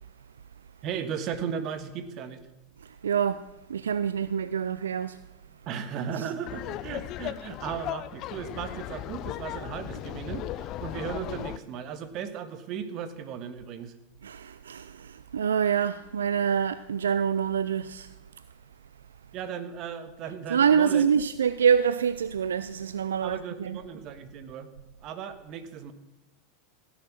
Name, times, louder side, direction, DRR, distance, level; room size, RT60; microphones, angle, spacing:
voice 1, 0.8-2.4 5.7-13.9 19.3-21.1 23.2-24.7 25.0-25.9, right 7 dB, 45° right, 1.5 m, -36 dB
voice 2, 2.8-3.4 3.7-5.2 6.2-6.3 14.2-18.1 20.5-23.8, right 7 dB, 80° right, 0.4 m, -26 dB
Laughter, 6.5-11.6, left 14 dB, 45° left, 0.5 m, -36 dB
16.5 x 10.5 x 6.1 m
hypercardioid pair, 85°, 0 cm